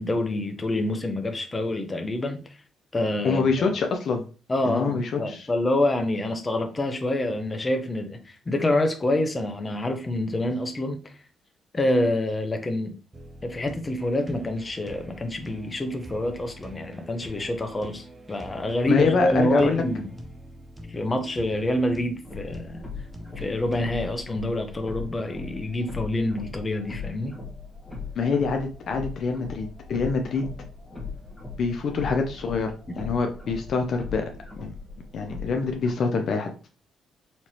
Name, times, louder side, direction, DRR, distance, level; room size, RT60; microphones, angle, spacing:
voice 1, 0.0-2.4 2.9-3.7 4.5-11.1 11.7-13.0 13.4-20.1 20.9-22.8 23.4-27.4, left 1 dB, 25° left, 0.8 m, -27 dB
voice 2, 3.2-4.2 4.7-5.5 18.9-19.8 28.2-30.5 31.6-34.3 34.6-34.7 35.1-36.5, left 4 dB, 60° left, 0.6 m, -25 dB
sound 1, 13.1-24.2, equal, 15° right, 0.7 m, -44 dB
sound 2, 22.2-35.9, left 4 dB, 5° left, 1.3 m, -39 dB
4.4 x 3.0 x 2.9 m
cardioid pair, 90°, 0 cm